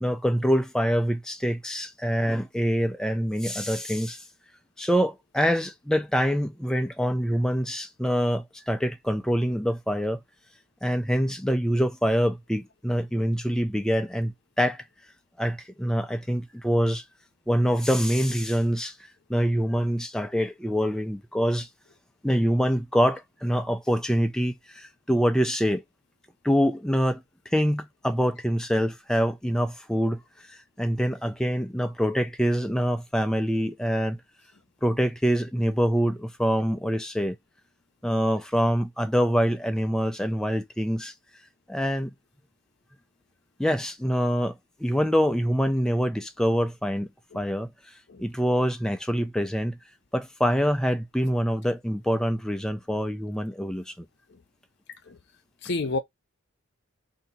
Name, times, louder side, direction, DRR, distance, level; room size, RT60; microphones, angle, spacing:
voice 1, 0.0-4.2 4.8-10.2 10.8-14.8 15.4-17.0 17.5-19.0 19.3-21.7 22.2-25.8 26.4-30.2 30.5-34.2 34.8-37.4 38.0-41.1 41.7-42.1 43.6-44.5 44.8-47.1 47.3-47.7 48.2-49.8 50.1-54.1, equal, 5° left, 0.3 m, -25 dB
voice 2, 55.6-56.0, left 3 dB, 50° left, 0.6 m, -29 dB
2.8 x 2.7 x 4.0 m
head